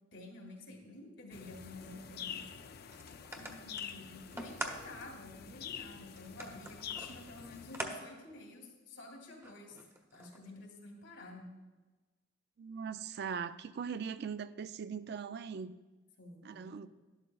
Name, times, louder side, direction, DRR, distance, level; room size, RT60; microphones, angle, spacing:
voice 1, 0.1-2.4 2.7-2.8 3.3-9.8 10.1-11.5 16.2-16.9, left 2 dB, 75° left, 0 dB, 2.3 m, -51 dB
sound 1, 1.3-7.9, left 8 dB, 55° left, 0.4 m, -47 dB
sound 2, 2.9-4.8 5.3-5.4 6.2-7.9 8.3-8.4 9.4-10.5, right 1 dB, 15° right, 0.8 m, -44 dB
voice 2, 12.6-15.7 16.4-16.9, right 6 dB, 55° right, 13 dB, 0.4 m, -40 dB
12.0 x 11.5 x 2.3 m, 1.2 s
head